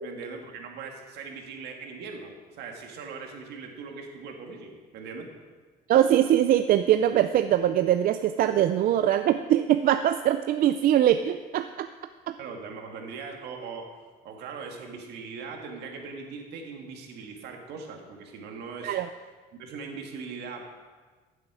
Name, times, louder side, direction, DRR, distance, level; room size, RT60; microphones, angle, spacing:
voice 1, 0.0-5.3 12.4-13.9 14.2-19.0 19.6-20.7, right 5 dB, 80° right, 2 dB, 1.9 m, -40 dB
voice 2, 5.9-11.9 12.3-12.4 18.8-19.1, right 11 dB, 60° right, 9 dB, 0.4 m, -22 dB
15.0 x 7.7 x 4.9 m, 1.4 s
cardioid pair, 110°, 17 cm